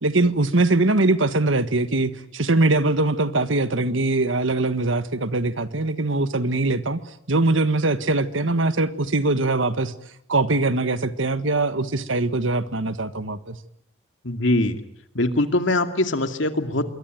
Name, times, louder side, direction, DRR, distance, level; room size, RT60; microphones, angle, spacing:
voice 1, 0.0-7.0 7.3-9.9 10.3-13.6, right 2 dB, 75° right, 12 dB, 1.6 m, -22 dB
voice 2, 14.2-14.8 15.1-16.8, left 1 dB, 70° left, 7 dB, 2.5 m, -22 dB
27.0 x 23.0 x 9.4 m, 0.74 s
head